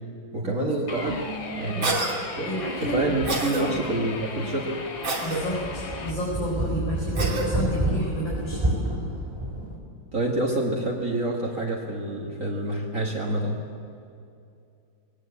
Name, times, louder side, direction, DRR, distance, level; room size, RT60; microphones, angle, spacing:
voice 1, 0.3-1.1 1.5-2.0 2.4-4.8 10.1-13.6, right 2 dB, 45° right, -1 dB, 2.1 m, -27 dB
sound 1, 0.9-6.1, left 3 dB, 55° left, 2.3 m, -37 dB
sound 2, 1.1-1.2 1.6-1.7 2.6-4.0 4.4-4.5 5.0-9.8, right 1 dB, 10° right, 3.1 m, -29 dB
Cough, 1.8-2.1 3.3-3.6 5.0-5.4 7.2-7.5, right 3 dB, 85° right, 3.4 m, -27 dB
voice 2, 2.4-2.9 3.5-3.8 5.2-8.7, equal, 80° left, -6 dB, 5.5 m, -31 dB
21.0 x 19.0 x 8.4 m, 2.5 s
omnidirectional pair, 2.1 m